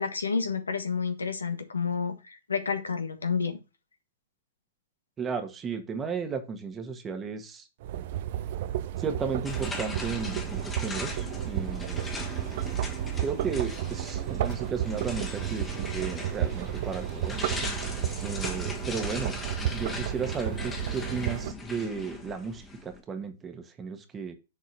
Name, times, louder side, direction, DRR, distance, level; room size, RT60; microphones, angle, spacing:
voice 1, 0.0-3.6, left 5 dB, 80° left, 7 dB, 1.4 m, -30 dB
voice 2, 5.2-7.7 9.0-12.0 13.2-17.4 18.2-19.3 19.7-24.3, right 5 dB, 20° right, 6 dB, 1.5 m, -34 dB
sound 1, 7.8-21.5, right 11 dB, 50° right, 0.5 m, -32 dB
sound 2, 9.4-23.0, left 3 dB, 15° left, 1.6 m, -39 dB
7.0 x 4.6 x 6.0 m, 0.29 s
figure-of-eight pair, 115°, 0 cm